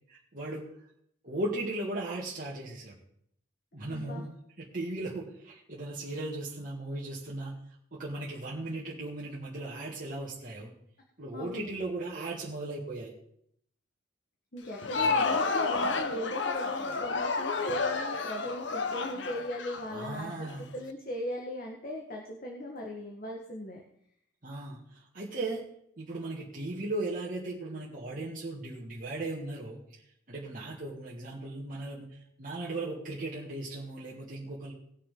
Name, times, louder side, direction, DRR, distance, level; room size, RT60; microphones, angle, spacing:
voice 1, 0.1-0.7 1.2-3.0 3.7-7.6 7.9-10.7 11.2-13.1 14.9-15.1 19.9-20.7 24.4-25.7 26.0-29.8 30.3-34.7, right 2 dB, 45° right, -6 dB, 2.1 m, -37 dB
voice 2, 3.9-4.2 11.3-11.7 14.5-23.8, left 1 dB, 50° left, 0 dB, 1.5 m, -38 dB
Crowd, 14.6-20.5, left 4 dB, 70° left, 0.9 m, -31 dB
19.5 x 6.6 x 3.9 m, 0.70 s
head